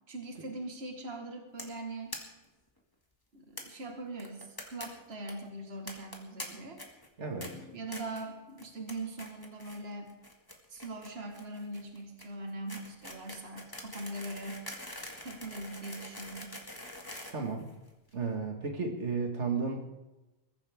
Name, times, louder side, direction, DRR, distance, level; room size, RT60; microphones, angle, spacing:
voice 1, 0.1-2.1 3.3-6.8 7.5-10.1 10.7-14.7 15.2-16.6, right 2 dB, 60° right, 3 dB, 2.0 m, -41 dB
sound 1, 1.6-1.8 2.1-2.2 2.5-2.6 2.8-2.9 3.6-3.7 4.2-4.9 5.1-5.3 5.9-6.5 6.8-7.1 7.4-7.5 7.9-8.2 8.6-8.9 9.2-9.8 10.1-18.1, left 1 dB, 20° left, 2.2 m, -44 dB
voice 2, 7.2-7.5 17.3-17.6 18.1-19.8, right 4 dB, 80° right, 2 dB, 2.2 m, -33 dB
22.0 x 14.5 x 3.6 m, 1.0 s
omnidirectional pair, 1.2 m